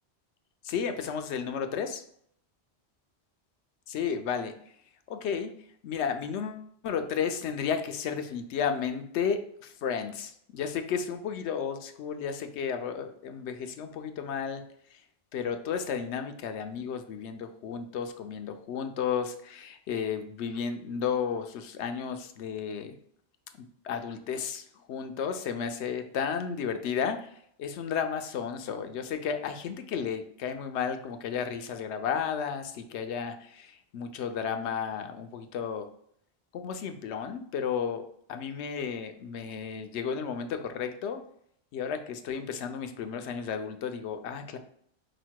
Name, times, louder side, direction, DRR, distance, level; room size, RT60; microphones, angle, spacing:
voice 1, 0.6-2.0 3.9-4.5 5.1-5.5 5.8-14.6 14.9-15.0 15.3-22.9 23.6-27.3 27.6-35.9 36.5-41.3 41.7-44.6, left 7 dB, 85° left, 7 dB, 0.9 m, -33 dB
5.1 x 2.1 x 4.5 m, 0.67 s
omnidirectional pair, 1.1 m